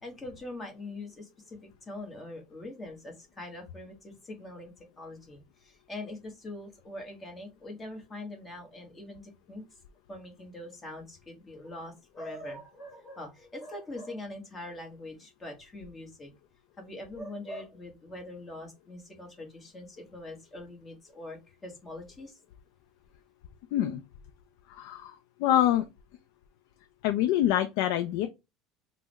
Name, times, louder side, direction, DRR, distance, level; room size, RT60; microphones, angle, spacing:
voice 1, 0.0-4.7 5.0-9.6 10.1-16.3 16.8-22.4, left 1 dB, 20° left, 1.0 m, -43 dB
voice 2, 23.7-24.0 24.7-25.9 27.0-28.3, left 12 dB, 75° left, 0.3 m, -26 dB
3.4 x 2.0 x 3.2 m
cardioid pair, 140°, 0 cm